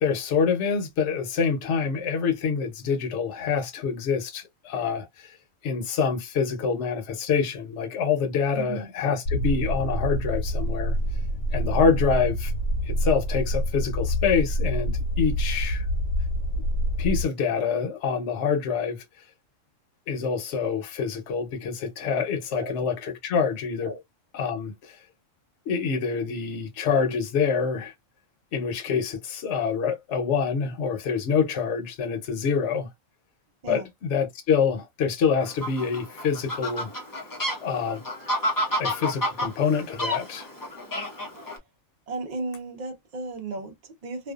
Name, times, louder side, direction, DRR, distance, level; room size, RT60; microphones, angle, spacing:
voice 1, 0.0-5.4 5.6-11.0 11.5-12.5 12.8-15.9 17.0-19.0 20.1-23.9 24.3-25.0 25.7-27.9 28.5-32.9 33.7-36.9 37.6-38.0 38.8-40.5, left 6 dB, 65° left, 0.9 m, -26 dB
voice 2, 8.5-8.9 22.5-22.8 23.8-24.0 33.6-33.9 41.4-41.5 42.1-44.3, right 3 dB, 40° right, 0.7 m, -35 dB
sound 1, 9.3-17.3, equal, 85° left, 1.1 m, -26 dB
Fowl, 35.4-41.6, left 1 dB, 30° left, 0.4 m, -30 dB
2.5 x 2.3 x 2.3 m
omnidirectional pair, 1.3 m